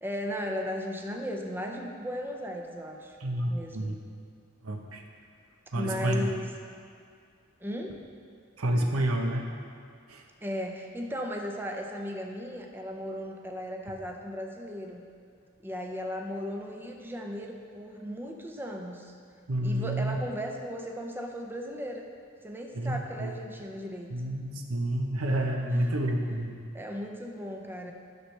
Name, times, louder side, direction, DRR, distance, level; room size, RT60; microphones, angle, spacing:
voice 1, 0.0-3.2 3.5-4.0 5.7-6.5 7.6-8.1 10.4-15.0 15.6-19.1 19.6-22.0 22.4-24.2 25.7-25.9 26.7-27.9, equal, 10° right, 2 dB, 0.5 m, -36 dB
voice 2, 3.2-4.0 4.6-5.0 5.7-6.3 8.6-9.5 10.1-10.2 19.5-20.2 22.7-23.3 24.1-26.6, right 1 dB, 85° right, 2 dB, 0.9 m, -29 dB
12.0 x 6.5 x 3.3 m, 2.3 s
head